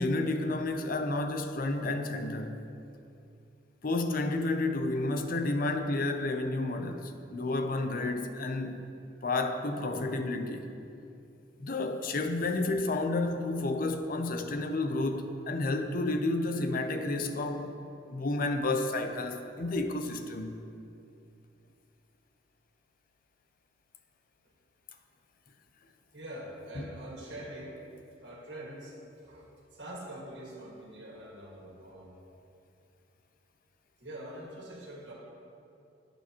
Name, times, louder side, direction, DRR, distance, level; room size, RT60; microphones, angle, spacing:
voice 1, 0.0-2.6 3.8-8.9 9.2-10.7 11.6-17.7 18.1-20.6 26.8-26.9, left 2 dB, 50° left, 0.7 m, -31 dB
voice 2, 26.1-27.8 28.2-32.1 34.0-35.1, right 1 dB, 70° right, 2.0 m, -44 dB
11.5 x 8.4 x 3.0 m
head